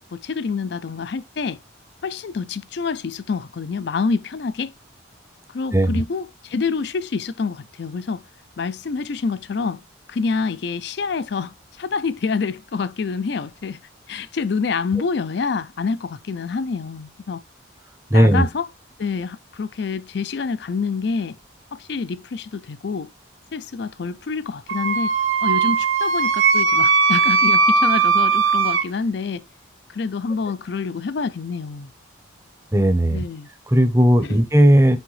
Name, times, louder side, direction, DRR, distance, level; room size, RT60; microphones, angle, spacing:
voice 1, 0.1-1.6 2.0-4.7 5.5-8.2 8.6-9.8 10.1-13.8 14.1-17.4 18.1-18.7 19.0-21.4 21.8-23.1 23.5-25.1 25.4-29.5 29.9-31.9 33.1-33.5 34.2-34.4, left 4 dB, 55° left, 0.4 m, -27 dB
voice 2, 5.7-6.0 18.1-18.5 32.7-33.2 33.7-35.0, equal, 15° right, 0.7 m, -16 dB
Wind instrument woodwind instrument, 24.7-28.8, right 4 dB, 85° right, 1.0 m, -18 dB
6.2 x 4.7 x 3.2 m
head